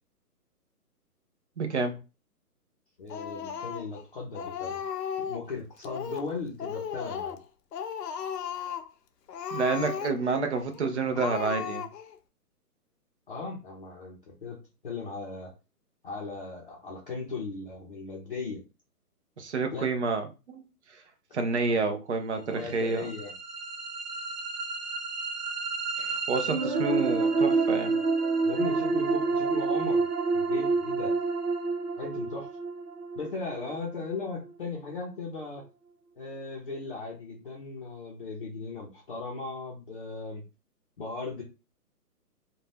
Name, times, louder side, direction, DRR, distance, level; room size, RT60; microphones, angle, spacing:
voice 1, 1.6-2.0 9.5-11.9 19.4-20.6 20.9-21.0 21.3-23.1 26.0-28.0, right 4 dB, 45° right, 0.6 m, -29 dB
voice 2, 3.0-4.8 5.2-7.4 13.3-14.6 14.8-15.5 16.0-18.6 19.7-19.9 22.5-23.3 28.4-30.0 30.3-31.1 32.0-32.5 33.1-35.6 36.2-40.4 41.0-41.4, left 4 dB, 35° left, 0.6 m, -37 dB
Speech, 3.1-4.0 4.3-5.5 5.8-6.3 6.6-7.4 7.7-8.9 9.3-10.4 10.7-10.8 11.1-12.2, left 8 dB, 85° left, 0.7 m, -35 dB
sound 1, 22.7-34.7, right 4 dB, 80° right, 0.9 m, -29 dB
2.6 x 2.2 x 3.3 m
hypercardioid pair, 160°, 47 cm